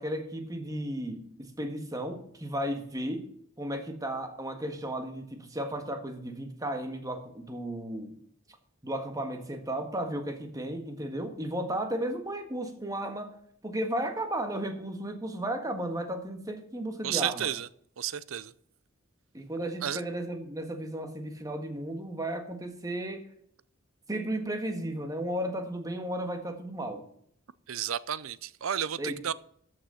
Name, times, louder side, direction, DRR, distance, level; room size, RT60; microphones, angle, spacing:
voice 1, 0.0-3.3 3.6-8.2 8.8-13.4 13.6-17.5 19.3-23.3 24.1-27.1 29.0-29.2, right 1 dB, 15° right, 5 dB, 1.6 m, -34 dB
voice 2, 17.0-17.7 18.0-18.5 19.8-20.0 27.7-29.3, right 9 dB, 80° right, 18 dB, 0.6 m, -32 dB
13.0 x 6.5 x 5.8 m, 0.64 s
head